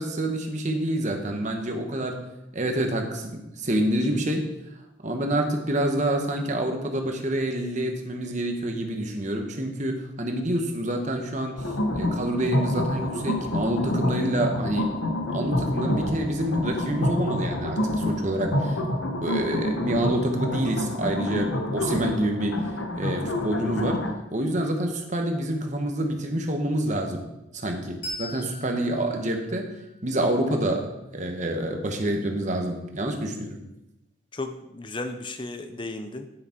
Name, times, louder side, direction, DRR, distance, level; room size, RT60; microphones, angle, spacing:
voice 1, 0.0-2.2 2.5-4.5 5.0-15.0 15.3-18.8 19.2-22.7 23.0-24.0 24.3-27.2 27.5-29.7 30.0-33.6, right 1 dB, 35° right, 3 dB, 1.1 m, -27 dB
sound 1, 11.6-24.1, left 1 dB, 75° left, 1.1 m, -28 dB
Bell, 28.0-31.1, equal, 50° left, 3.4 m, -42 dB
voice 2, 34.3-36.3, left 2 dB, 25° left, 8 dB, 0.6 m, -34 dB
9.8 x 6.4 x 4.5 m, 0.92 s
head